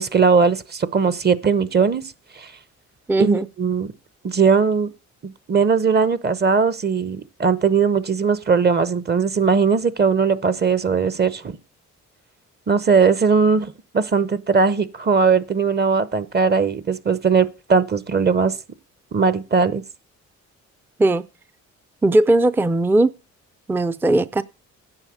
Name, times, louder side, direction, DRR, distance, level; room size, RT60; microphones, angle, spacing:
voice 1, 0.0-2.0 2.4-2.5 3.2-3.9 4.2-4.9 5.2-11.6 12.7-18.5 19.1-19.8, right 5 dB, 35° right, 0.9 m, -19 dB
voice 2, 3.1-3.5 21.0-21.2 22.0-23.1 23.7-24.4, right 2 dB, 5° right, 0.5 m, -18 dB
9.9 x 6.6 x 6.4 m
cardioid pair, 90°, 30 cm